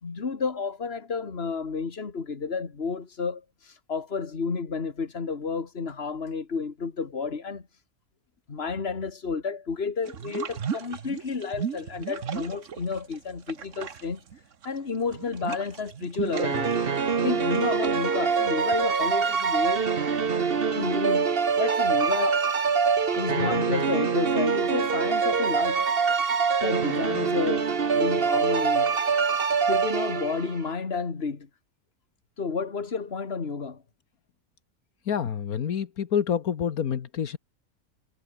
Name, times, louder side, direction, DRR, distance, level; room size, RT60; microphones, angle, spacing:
voice 1, 0.0-7.6 8.5-14.2 14.6-16.7 17.2-19.9 20.7-21.3 21.6-22.4 23.1-25.9 26.6-29.0 29.7-31.5 32.4-33.8, left 5 dB, 45° left, 2.2 m, -31 dB
sound 1, 10.1-13.2 13.4-19.4, right 7 dB, 60° right, 1.5 m, -36 dB
sound 2, 16.3-30.6, right 5 dB, 40° right, 1.4 m, -24 dB
voice 2, 35.1-37.4, left 8 dB, 80° left, 1.7 m, -27 dB
omnidirectional pair, 1.5 m